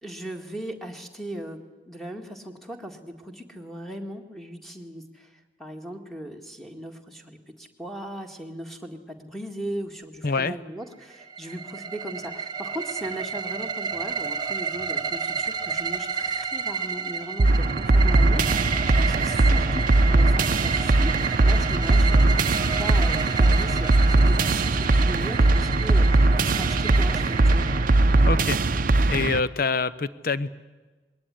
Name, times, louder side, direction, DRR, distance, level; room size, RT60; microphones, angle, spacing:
voice 1, 0.0-1.6 1.9-27.7, right 1 dB, ahead, 4 dB, 1.8 m, -38 dB
voice 2, 10.2-10.6 28.3-28.6 29.1-30.6, left 4 dB, 55° left, 16 dB, 0.8 m, -25 dB
sound 1, 11.1-28.9, right 6 dB, 25° right, 1.3 m, -31 dB
sound 2, 17.4-29.4, right 2 dB, 50° right, 0.7 m, -20 dB
21.5 x 18.0 x 10.0 m, 1.3 s
head